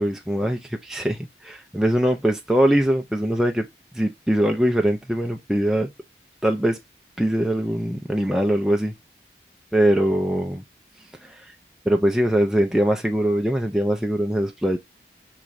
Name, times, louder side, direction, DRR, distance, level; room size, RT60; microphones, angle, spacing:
voice 1, 0.0-3.7 3.9-5.9 6.4-6.8 7.2-8.9 9.7-10.6 11.2-11.5 11.9-14.8, right 1 dB, 5° right, 0.3 m, -22 dB
5.7 x 3.1 x 2.5 m
head